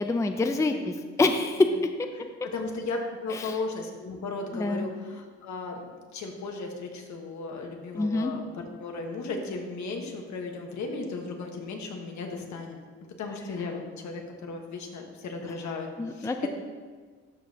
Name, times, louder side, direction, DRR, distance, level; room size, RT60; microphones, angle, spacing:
voice 1, 0.0-1.7 3.3-3.6 4.5-4.9 7.9-8.3 16.0-16.5, left 3 dB, 10° left, 6 dB, 0.4 m, -26 dB
voice 2, 0.5-0.8 1.6-1.8 2.1-12.8 13.2-16.5, left 3 dB, 70° left, 3 dB, 1.3 m, -36 dB
13.0 x 5.1 x 2.8 m, 1.5 s
cardioid pair, 90°, 30 cm